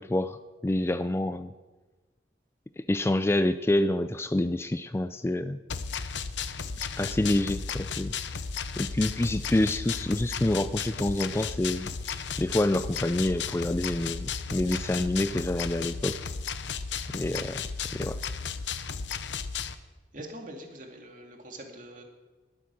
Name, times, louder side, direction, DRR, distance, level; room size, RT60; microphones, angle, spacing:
voice 1, 0.0-1.5 2.8-5.6 7.0-8.2 8.8-16.2 17.1-18.2, left 1 dB, 15° left, 12 dB, 0.3 m, -27 dB
sound 1, 5.7-19.7, left 6 dB, 85° left, 0.7 m, -34 dB
voice 2, 20.1-22.0, right 1 dB, 45° right, 2 dB, 2.4 m, -43 dB
20.0 x 8.3 x 6.3 m, 1.3 s
head